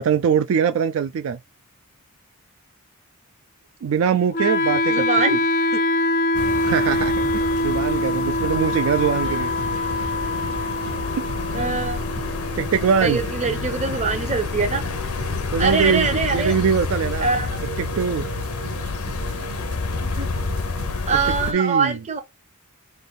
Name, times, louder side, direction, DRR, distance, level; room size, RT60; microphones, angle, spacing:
voice 1, 0.0-1.4 3.8-5.0 6.6-9.5 12.5-13.2 15.5-17.3 17.8-18.2 21.1-22.0, right 7 dB, 65° right, 0.3 m, -22 dB
Wind instrument woodwind instrument, 4.3-14.3, left 1 dB, 40° left, 0.4 m, -24 dB
voice 2, 4.9-5.4 5.7-5.8 11.5-12.0 13.0-14.9 15.6-16.6 17.2-17.5 20.0-20.3 21.1-22.2, right 4 dB, 30° right, 0.7 m, -23 dB
sound 1, 6.3-21.5, left 4 dB, 80° left, 0.7 m, -29 dB
sound 2, 8.4-21.0, right 3 dB, 85° right, 1.2 m, -38 dB
3.4 x 2.6 x 3.9 m
head